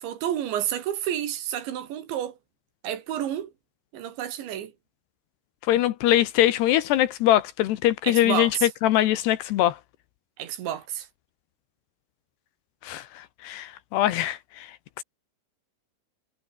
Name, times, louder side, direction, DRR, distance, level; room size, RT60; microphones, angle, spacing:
voice 1, 0.0-2.4 2.8-3.5 3.9-4.7 8.0-8.7 10.4-11.1, right 11 dB, 75° right, 4.5 m, -30 dB
voice 2, 5.7-9.8 12.8-14.7 15.0-15.1, left 13 dB, 75° left, 2.9 m, -23 dB
omnidirectional pair, 5.4 m